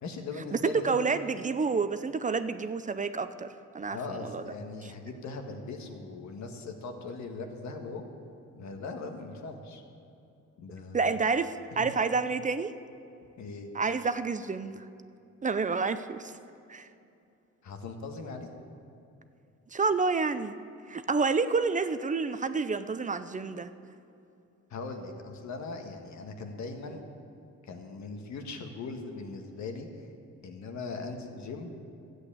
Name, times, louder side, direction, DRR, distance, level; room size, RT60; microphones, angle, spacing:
voice 1, 0.0-1.0 3.9-8.1 8.6-9.8 10.6-11.1 11.7-11.9 13.4-13.7 17.6-18.5 24.7-27.0 27.6-29.9 30.4-31.7, left 3 dB, 65° left, 4 dB, 1.6 m, -40 dB
voice 2, 0.6-4.4 10.9-12.7 13.7-14.8 15.4-16.3 16.7-16.9 19.7-20.6 20.9-23.7, right 4 dB, 25° right, 11 dB, 0.5 m, -29 dB
13.5 x 8.1 x 8.6 m, 2.7 s
cardioid pair, 90°, 30 cm